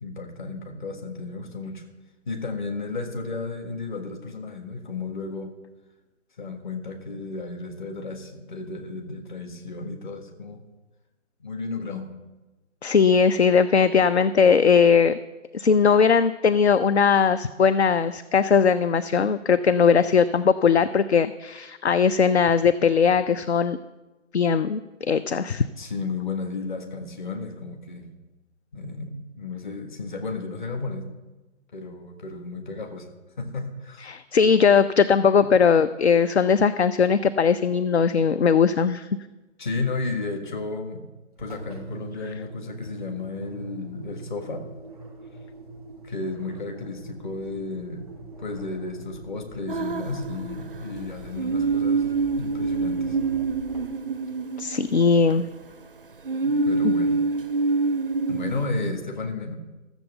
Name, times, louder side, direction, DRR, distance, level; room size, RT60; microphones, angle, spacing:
voice 1, 0.0-1.8 2.3-5.5 6.4-10.6 11.4-12.1 25.8-28.1 28.7-31.1 31.7-33.1 33.4-34.1 39.6-41.0 41.4-44.7 46.0-48.1 48.4-52.1 52.4-53.2 56.4-57.1 58.3-59.5, left 3 dB, 40° left, 4 dB, 1.6 m, -33 dB
voice 2, 12.8-15.2 15.5-23.8 24.3-25.7 34.0-39.1 54.6-55.5 56.8-56.9, left 6 dB, 55° left, 13 dB, 0.5 m, -19 dB
Engine, 41.3-55.3, right 2 dB, ahead, 0.7 m, -42 dB
sound 1, 49.7-50.7 51.4-55.3 56.2-58.6, right 4 dB, 45° right, 0.4 m, -25 dB
13.5 x 7.1 x 7.8 m, 1.1 s
figure-of-eight pair, 150°, 39 cm